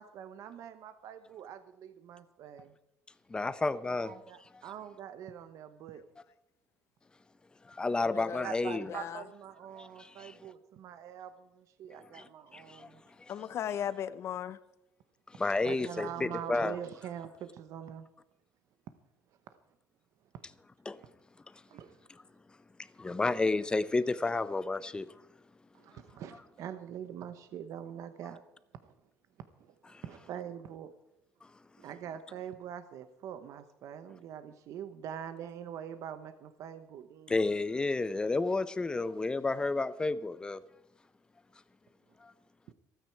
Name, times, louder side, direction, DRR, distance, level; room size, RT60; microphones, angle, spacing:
voice 1, 0.0-2.7 4.0-6.0 7.9-8.1 8.4-13.0 15.6-18.1 20.3-20.4 21.7-22.0 25.7-28.4 28.8-28.9 29.6-29.7 30.0-30.9 31.8-37.3 42.7-42.8, right 9 dB, 55° right, 0.9 m, -44 dB
voice 2, 3.3-4.2 7.6-8.9 9.8-10.4 12.1-12.9 13.2-13.3 15.3-16.8 20.9-21.0 23.0-25.1 29.9-30.0 37.3-40.6 42.2-42.3, left 3 dB, 15° left, 0.6 m, -31 dB
voice 3, 7.9-9.2 13.3-14.6, left 9 dB, 45° left, 0.7 m, -38 dB
26.5 x 9.2 x 4.6 m
cardioid pair, 145°, 6 cm